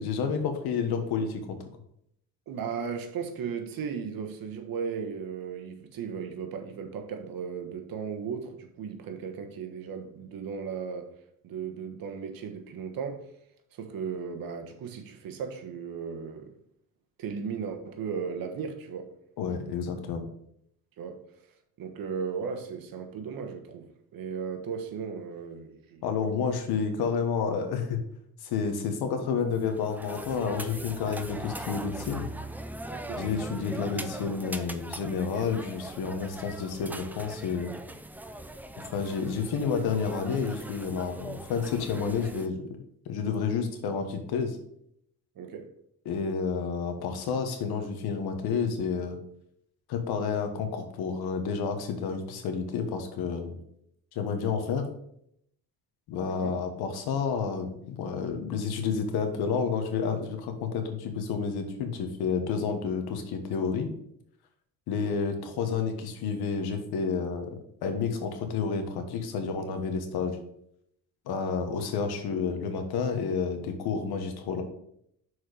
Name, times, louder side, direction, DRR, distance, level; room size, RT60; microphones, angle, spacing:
voice 1, 0.0-1.6 19.4-20.3 26.0-28.0 28.4-32.3 33.2-37.7 38.8-44.6 46.0-49.2 49.9-53.6 54.1-54.9 56.1-63.9 64.9-67.5 67.8-70.4 71.3-74.6, left 5 dB, 85° left, 1.3 m, -30 dB
voice 2, 2.5-11.1 11.4-13.3 13.7-16.5 17.2-19.1 21.0-21.2 21.8-26.3 32.9-33.2 45.3-45.7 56.2-56.5, right 6 dB, 65° right, 1.3 m, -36 dB
sound 1, 29.5-42.5, right 1 dB, 5° right, 0.5 m, -41 dB
6.3 x 4.7 x 5.0 m
cardioid pair, 100°, 37 cm